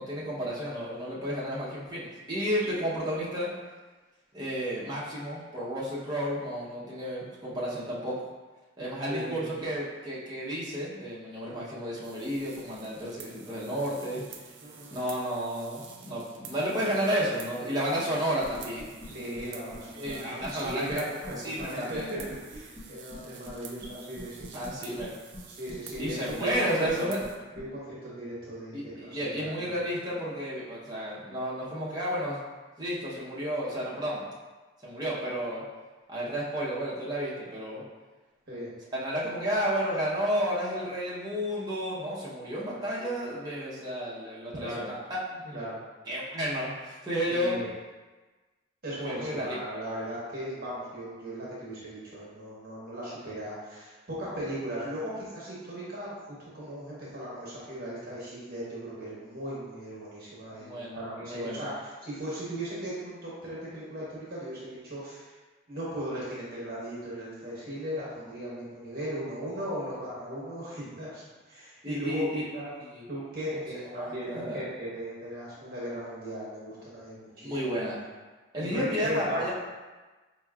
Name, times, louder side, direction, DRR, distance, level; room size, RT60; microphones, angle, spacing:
voice 1, 0.0-3.5 4.3-8.2 8.8-14.2 14.9-18.9 19.9-22.1 24.5-25.1 26.0-27.2 28.7-32.4 32.8-34.2 34.8-35.7 36.1-37.8 38.9-45.6 46.1-47.6 49.0-49.6 60.6-61.6 71.8-72.4 72.8-73.0 74.0-74.6 77.4-78.0 78.5-79.5, equal, 20° right, -7 dB, 0.7 m, -32 dB
voice 2, 9.1-9.4 14.6-15.0 19.0-22.2 22.5-24.5 25.6-27.1 27.6-29.5 38.5-38.7 44.6-44.9 45.5-45.8 47.3-47.7 48.8-56.1 56.4-65.3 65.7-72.7 73.1-77.8 78.6-79.5, equal, 50° right, -7 dB, 0.9 m, -37 dB
sound 1, 12.0-27.4, right 6 dB, 70° right, 0.4 m, -49 dB
sound 2, 18.4-19.1 19.3-19.4 19.7-19.8 20.1-20.2 20.4-20.9 21.2-21.3 21.6-21.7 21.9-22.8 23.1-23.2 23.4-23.5 23.8-23.9 24.2-24.7 25.0-25.1 25.3-25.4 25.7-26.6 26.8-26.9 27.2-27.3 27.6-27.7, left 1 dB, 30° left, 0.7 m, -43 dB
4.4 x 3.0 x 2.3 m, 1.3 s
head